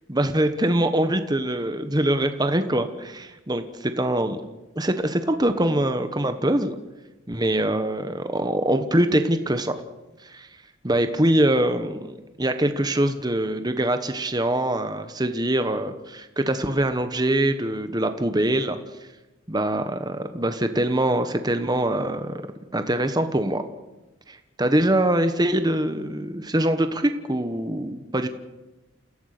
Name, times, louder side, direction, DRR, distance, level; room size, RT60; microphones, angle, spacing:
voice 1, 0.1-4.4 4.7-6.8 7.3-9.7 10.2-10.5 10.8-18.8 19.5-22.4 22.7-23.6 24.3-28.3, right 1 dB, 20° right, 8 dB, 1.2 m, -23 dB
29.0 x 16.0 x 6.7 m, 1.1 s
head